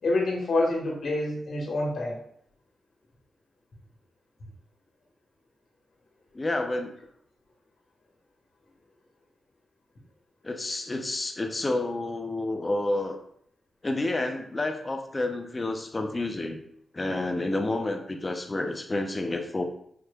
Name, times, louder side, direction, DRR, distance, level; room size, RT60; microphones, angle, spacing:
voice 1, 0.0-2.2, left 2 dB, 65° left, -2 dB, 1.4 m, -27 dB
voice 2, 6.3-6.9 10.4-13.2 13.8-16.6 16.9-19.6, left 2 dB, 30° left, 5 dB, 0.7 m, -29 dB
5.8 x 3.1 x 2.3 m, 0.68 s
cardioid pair, 60°, 0 cm